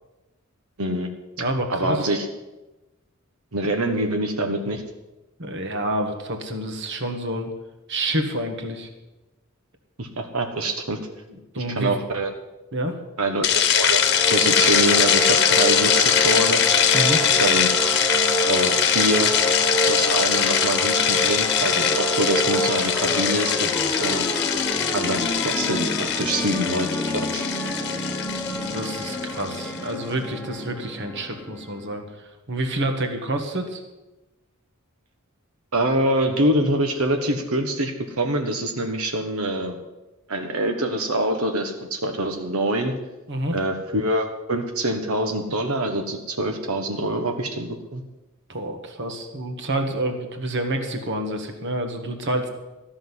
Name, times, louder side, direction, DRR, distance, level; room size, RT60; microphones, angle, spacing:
voice 1, 0.8-1.1 1.7-2.2 3.5-4.8 10.0-11.0 11.5-12.3 13.2-14.0 14.3-16.6 17.2-17.7 18.4-19.3 19.9-23.7 24.0-24.2 24.9-26.9 27.3-27.4 35.7-39.8 40.3-42.9 43.5-48.0, right 1 dB, 85° right, 4 dB, 1.4 m, -25 dB
voice 2, 1.4-2.1 5.4-7.5 7.9-8.9 11.5-11.9 12.7-13.0 16.9-17.2 28.5-32.0 32.5-33.8 43.3-43.5 48.5-52.5, right 1 dB, 55° right, 5 dB, 1.6 m, -28 dB
sound 1, 13.3-32.0, equal, 10° left, 1.2 m, -28 dB
sound 2, 13.4-29.7, left 9 dB, 50° left, 1.1 m, -22 dB
13.5 x 6.5 x 9.6 m, 1.1 s
head